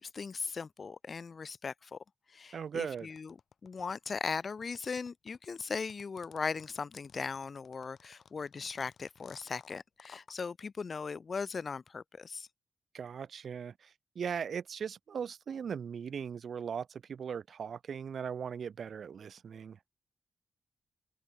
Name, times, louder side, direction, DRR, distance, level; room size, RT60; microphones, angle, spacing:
voice 1, 0.0-2.0 2.3-3.3 3.6-12.5, left 5 dB, 45° left, 0.7 m, -38 dB
voice 2, 2.5-3.1 12.9-19.8, right 7 dB, 70° right, 0.8 m, -39 dB
sound 1, 2.9-10.3, left 6 dB, 65° left, 2.9 m, -57 dB
wide cardioid pair, 135°, 0 cm